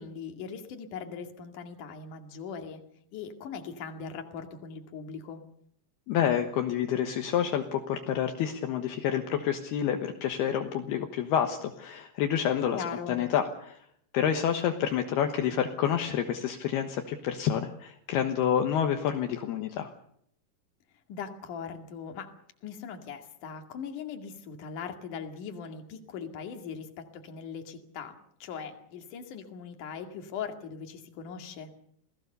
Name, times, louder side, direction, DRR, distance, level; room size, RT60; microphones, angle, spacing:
voice 1, 0.0-2.8 3.1-5.4 12.7-13.2 21.1-22.3 22.6-31.7, left 6 dB, 55° left, 5 dB, 3.4 m, -40 dB
voice 2, 6.1-13.8 14.1-19.9, left 9 dB, 70° left, 5 dB, 3.1 m, -28 dB
28.0 x 18.0 x 6.8 m, 0.70 s
omnidirectional pair, 5.0 m